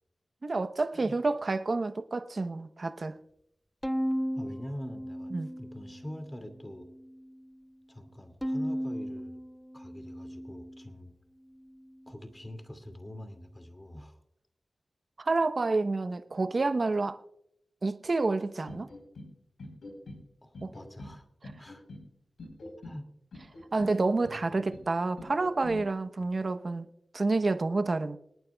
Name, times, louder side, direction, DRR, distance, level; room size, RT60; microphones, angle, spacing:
voice 1, 0.4-3.2 5.3-5.5 15.2-17.2 17.8-18.9 20.6-20.7 23.7-26.9 27.1-28.2, right 3 dB, 55° right, 0.9 m, -29 dB
Bowed string instrument, 3.8-6.2 6.6-7.4 8.4-10.9, equal, 5° left, 0.5 m, -36 dB
voice 2, 4.3-6.9 7.9-9.4 9.7-11.1 12.1-14.2 20.4-21.3 21.6-21.8 22.8-23.1 24.4-24.8, left 1 dB, 20° left, 2.4 m, -44 dB
sound 1, 18.7-19.3 19.6-20.2 20.5-21.1 21.4-22.0 22.4-23.0 23.3-23.9 24.2-24.8 25.2-25.8, left 2 dB, 90° left, 4.3 m, -44 dB
27.0 x 9.3 x 2.3 m
cardioid pair, 45°, 0 cm